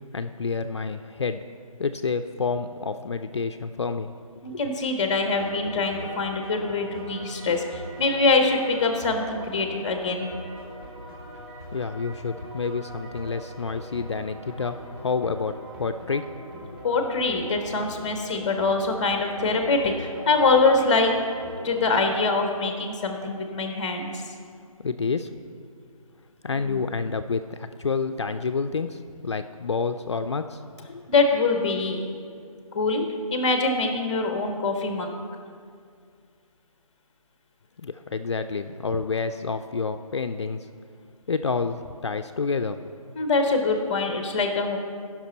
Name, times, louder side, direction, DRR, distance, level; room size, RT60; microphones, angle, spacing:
voice 1, 0.1-1.4 1.8-4.1 4.5-4.6 11.7-16.3 24.8-25.3 26.4-30.6 30.9-31.1 37.8-40.7 41.3-42.8, left 4 dB, 50° left, 8 dB, 0.4 m, -29 dB
voice 2, 4.4-10.3 16.8-21.1 21.6-24.2 26.6-26.8 31.1-32.0 32.7-33.0 33.3-35.1 43.1-44.8, left 3 dB, 10° left, 4 dB, 0.7 m, -24 dB
sound 1, 5.1-22.1, equal, 40° right, 2.3 m, -42 dB
14.5 x 6.0 x 4.1 m, 2.2 s
figure-of-eight pair, 165°, 19 cm